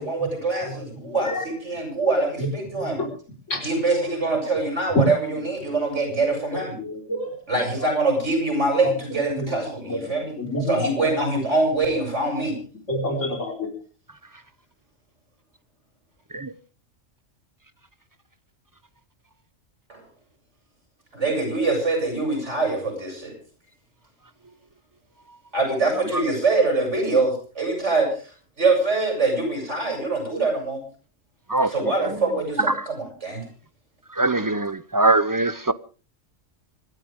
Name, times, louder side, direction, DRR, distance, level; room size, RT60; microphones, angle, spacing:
voice 1, 0.0-3.0 3.6-6.7 7.5-10.4 10.7-12.6 19.9-20.0 21.1-23.3 25.5-30.8 31.6-33.4, right 3 dB, 65° right, 7.8 m, -24 dB
voice 2, 0.6-1.5 2.4-2.5 2.7-3.1 3.5-3.7 4.0-4.1 5.6-5.8 6.5-7.7 9.3-9.6 9.9-11.1 12.9-13.7, left 1 dB, 75° left, 5.0 m, -30 dB
voice 3, 34.2-35.7, right 2 dB, 25° right, 0.5 m, -21 dB
25.5 x 12.5 x 3.6 m
omnidirectional pair, 1.3 m